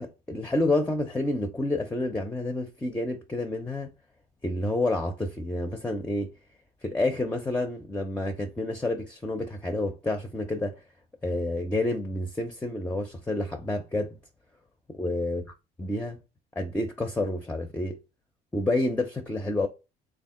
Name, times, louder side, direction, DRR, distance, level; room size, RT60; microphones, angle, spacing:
voice 1, 0.0-3.9 4.4-6.3 6.8-10.7 11.2-14.2 14.9-15.4 15.8-16.2 16.6-18.0 18.5-19.7, left 2 dB, 10° left, 0.5 m, -29 dB
3.5 x 2.4 x 3.6 m
cardioid pair, 110°, 17 cm